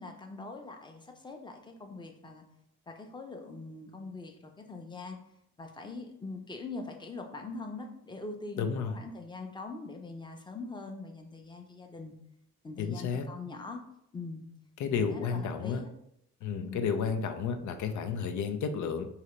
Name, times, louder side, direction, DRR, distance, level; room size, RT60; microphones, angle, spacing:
voice 1, 0.0-2.4 2.9-5.2 5.6-12.1 12.6-13.8 14.1-14.5 14.9-15.9 16.6-16.9, left 3 dB, 15° left, 4 dB, 0.6 m, -42 dB
voice 2, 8.6-8.9 12.8-13.3 14.8-15.8 16.4-19.1, left 6 dB, 75° left, 7 dB, 0.6 m, -32 dB
4.8 x 2.8 x 3.1 m, 0.77 s
cardioid pair, 90°, 30 cm